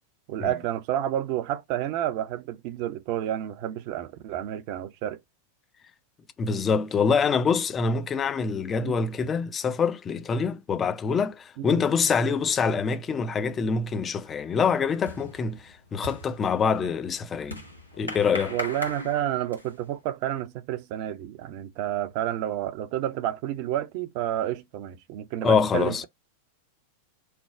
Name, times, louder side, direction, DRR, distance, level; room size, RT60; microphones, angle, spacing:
voice 1, 0.3-5.2 8.8-9.0 11.6-11.8 18.5-26.1, right 12 dB, 45° right, 0.5 m, -30 dB
voice 2, 6.4-17.6 18.0-18.6 25.4-26.1, left 5 dB, 20° left, 0.5 m, -25 dB
sound 1, 13.6-13.8 14.1-19.9, left 1 dB, 90° left, 1.4 m, -39 dB
3.3 x 2.2 x 4.3 m
figure-of-eight pair, 90°, 0 cm